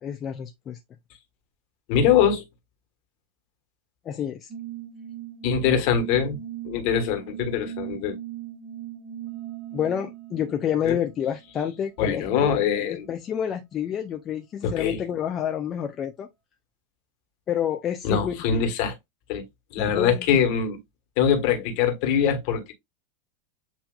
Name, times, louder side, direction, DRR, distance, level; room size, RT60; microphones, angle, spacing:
voice 1, 0.0-0.8 4.1-4.5 9.7-16.3 17.5-18.6 19.8-20.4, left 9 dB, 35° left, 0.6 m, -29 dB
voice 2, 1.9-2.4 5.4-6.4 6.6-8.1 10.8-10.9 12.0-13.1 14.6-15.0 18.0-18.9 19.3-19.4 19.7-20.8 21.2-22.7, left 7 dB, 50° left, 1.5 m, -23 dB
sound 1, 4.5-11.5, right 11 dB, 30° right, 1.4 m, -39 dB
7.9 x 2.8 x 2.4 m
figure-of-eight pair, 90°, 0 cm